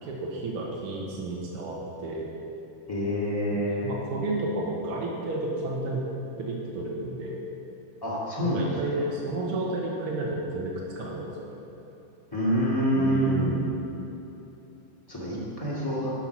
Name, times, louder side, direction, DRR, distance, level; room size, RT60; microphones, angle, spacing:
voice 1, 0.0-2.3 3.5-6.0 6.4-7.4 8.4-11.6 12.9-13.7, right 2 dB, 55° right, -3 dB, 1.6 m, -31 dB
voice 2, 2.9-3.9 8.0-8.7 12.3-13.4 15.1-16.1, equal, 10° left, -8 dB, 2.0 m, -27 dB
12.0 x 5.8 x 6.1 m, 3.0 s
omnidirectional pair, 3.9 m